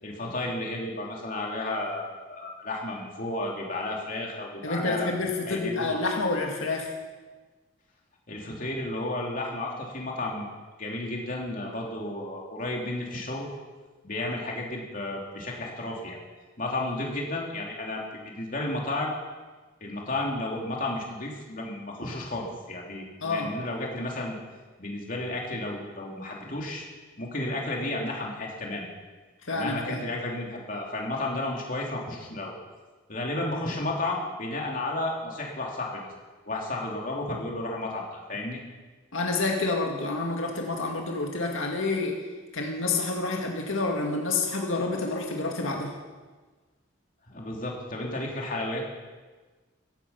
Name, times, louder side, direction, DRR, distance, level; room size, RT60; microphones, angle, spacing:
voice 1, 0.0-5.1 5.4-5.9 8.3-10.5 10.8-13.5 14.0-16.2 16.6-19.2 19.8-24.4 24.8-26.8 27.2-28.9 29.5-32.5 33.1-36.1 36.5-38.6 47.3-48.9, left 2 dB, 40° left, -1 dB, 3.1 m, -32 dB
voice 2, 4.6-6.9 23.2-23.5 29.5-30.0 39.1-42.2 42.5-45.9, left 3 dB, 80° left, 1 dB, 2.0 m, -28 dB
15.5 x 15.0 x 5.8 m, 1.3 s
head